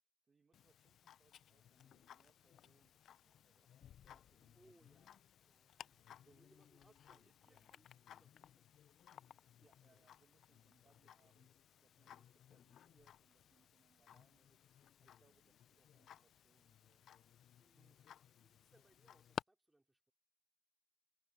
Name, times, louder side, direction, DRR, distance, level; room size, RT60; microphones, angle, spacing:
voice 1, 0.0-4.9 5.8-6.4 6.9-7.7 9.6-17.0 17.7-18.1, right 4 dB, 35° right, 1.4 m, -77 dB
Tick-tock, 0.5-19.4, left 10 dB, 70° left, 0.5 m, -57 dB
voice 2, 4.5-8.9 17.6-18.0 18.3-20.1, right 1 dB, 10° right, 4.7 m, -73 dB
cardioid pair, 90°, 0 cm